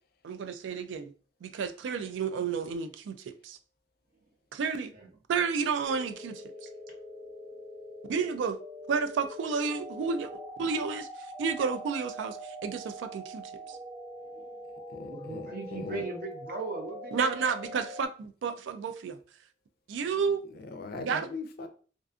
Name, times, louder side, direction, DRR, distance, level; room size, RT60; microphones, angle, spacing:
voice 1, 0.2-1.1 1.4-3.6 4.5-4.9 5.3-6.4 8.1-8.6 8.9-10.3 10.6-11.1 11.4-13.8 17.1-19.2 19.9-20.4 21.1-21.3, right 5 dB, 85° right, 9 dB, 0.3 m, -31 dB
sound 1, 5.8-18.1, equal, 20° right, 0.8 m, -43 dB
voice 2, 14.2-14.5 15.0-17.4, right 3 dB, 55° right, 2 dB, 0.7 m, -39 dB
voice 3, 14.9-16.0 20.5-21.7, left 3 dB, 60° left, 8 dB, 0.4 m, -40 dB
2.5 x 2.3 x 2.4 m, 0.39 s
head